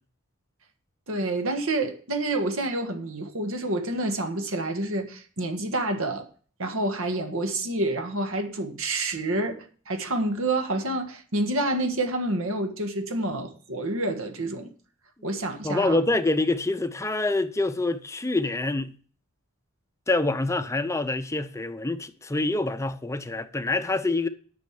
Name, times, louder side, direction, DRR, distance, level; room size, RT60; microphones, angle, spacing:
voice 1, 1.1-6.3 6.6-14.7 15.2-16.0, right 2 dB, 70° right, 1.6 m, -28 dB
voice 2, 15.6-18.9 20.1-24.3, left 2 dB, 15° left, 0.6 m, -26 dB
9.4 x 6.3 x 7.2 m
head